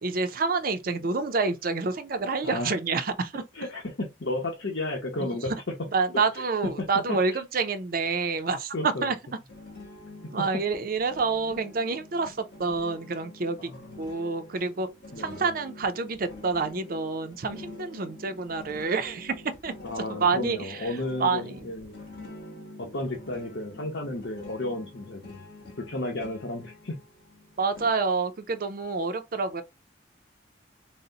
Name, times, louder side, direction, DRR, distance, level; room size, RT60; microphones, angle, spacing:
voice 1, 0.0-3.4 5.9-9.2 10.3-13.7 14.0-14.9 15.2-19.3 19.6-19.7 20.2-20.8 21.2-21.6 27.6-29.6, right 4 dB, 55° right, 0.6 m, -28 dB
voice 2, 2.4-2.8 3.5-5.7 6.3-6.7 7.1-7.4 8.7-9.1 13.6-14.0 15.1-15.5 19.8-22.0 22.8-25.4 25.9-27.0, left 2 dB, 85° left, 0.9 m, -33 dB
sound 1, 9.5-27.9, left 1 dB, 60° left, 2.1 m, -46 dB
4.0 x 2.1 x 3.9 m
head